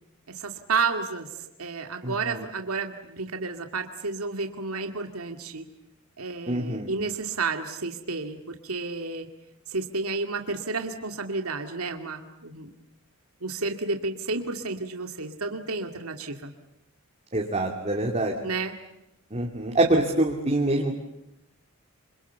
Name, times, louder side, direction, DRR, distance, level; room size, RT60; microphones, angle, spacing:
voice 1, 0.3-1.3 1.6-5.7 6.2-9.3 9.7-12.7 13.4-16.5 18.4-18.7, right 4 dB, 80° right, 5 dB, 2.3 m, -31 dB
voice 2, 6.5-6.9 17.3-18.3 19.3-20.9, right 2 dB, 30° right, -1 dB, 2.7 m, -25 dB
27.0 x 26.5 x 7.0 m, 0.88 s
head